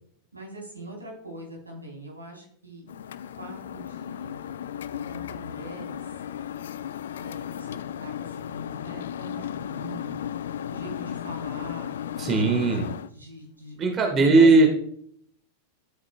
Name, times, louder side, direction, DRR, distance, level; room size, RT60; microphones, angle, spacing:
voice 1, 0.3-2.9 3.4-4.4 4.9-6.0 7.2-10.2 10.6-11.9 12.2-14.5, right 1 dB, 80° right, -1 dB, 3.9 m, -42 dB
sound 1, 2.9-13.1, left 9 dB, 60° left, 0.4 m, -35 dB
voice 2, 12.2-12.8 13.8-14.7, right 3 dB, 25° right, 4 dB, 1.7 m, -18 dB
12.5 x 8.5 x 2.3 m, 0.65 s
figure-of-eight pair, 90°, 0 cm